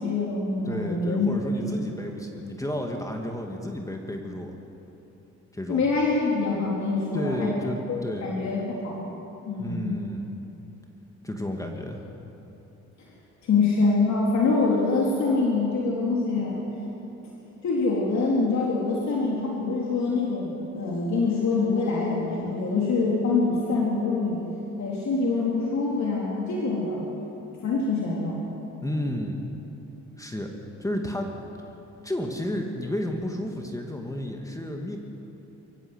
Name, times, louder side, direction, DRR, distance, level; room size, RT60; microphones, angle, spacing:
voice 1, 0.0-1.3 1.6-1.7 5.7-7.5 7.9-9.1 9.5-10.0 13.4-16.6 17.6-24.4 24.8-27.1 27.6-28.4, left 3 dB, 65° left, -4 dB, 3.8 m, -25 dB
voice 2, 0.6-4.5 5.5-5.9 7.1-8.3 9.6-10.3 11.2-12.1 28.8-29.4 30.2-30.5 30.8-31.3 31.7-31.8 32.0-35.0, left 1 dB, 10° left, 2 dB, 2.3 m, -32 dB
24.5 x 15.5 x 8.2 m, 3.0 s
cardioid pair, 90°, 30 cm